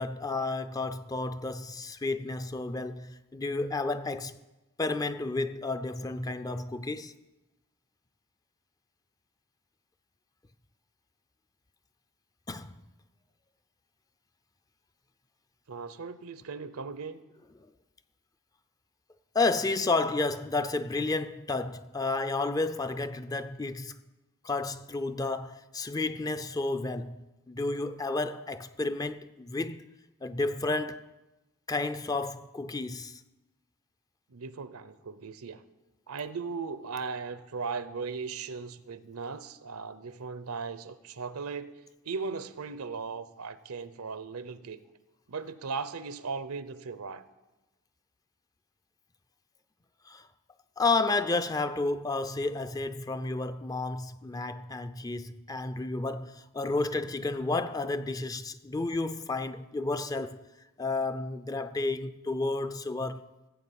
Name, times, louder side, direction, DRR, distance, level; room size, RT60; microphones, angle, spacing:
voice 1, 0.0-4.4 4.8-7.1 12.5-12.7 19.3-24.0 24.4-27.2 27.5-29.9 30.2-31.1 31.7-33.2 50.1-50.3 50.8-60.4 60.8-63.2, left 3 dB, 15° left, 0.4 m, -31 dB
voice 2, 15.7-17.2 34.3-35.6 36.1-41.8 42.0-44.8 45.3-47.2, right 5 dB, 80° right, 0.7 m, -37 dB
15.5 x 8.1 x 7.0 m
head